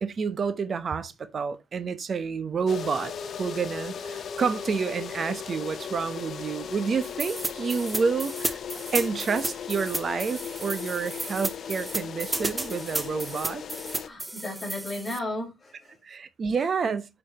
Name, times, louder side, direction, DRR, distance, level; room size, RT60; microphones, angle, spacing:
voice 1, 0.0-3.1 3.4-8.6 8.9-13.6 16.0-17.1, right 5 dB, 45° right, 0.8 m, -29 dB
sound 1, 2.7-14.1, left 7 dB, 55° left, 0.7 m, -37 dB
sound 2, 7.2-15.2, right 2 dB, 15° right, 0.6 m, -33 dB
voice 2, 14.0-16.0 16.6-16.7, left 1 dB, 30° left, 4.3 m, -35 dB
8.5 x 5.0 x 2.9 m
cardioid pair, 90°, 0 cm